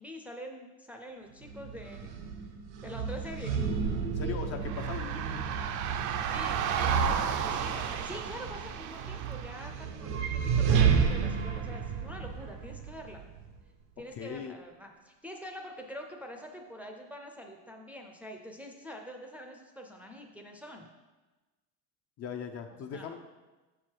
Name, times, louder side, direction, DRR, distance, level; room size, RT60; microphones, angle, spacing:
voice 1, 0.0-2.2 2.8-3.7 6.3-13.2 14.0-20.9 22.9-23.2, equal, 5° right, 1 dB, 0.6 m, -45 dB
sound 1, 1.4-13.6, right 6 dB, 80° right, 0.8 m, -31 dB
voice 2, 4.1-5.6 14.2-14.5 22.2-23.2, left 6 dB, 40° left, 6 dB, 0.6 m, -39 dB
sound 2, 4.6-9.8, right 8 dB, 55° right, 0.6 m, -34 dB
6.7 x 4.8 x 4.6 m, 1.2 s
cardioid pair, 120°, 37 cm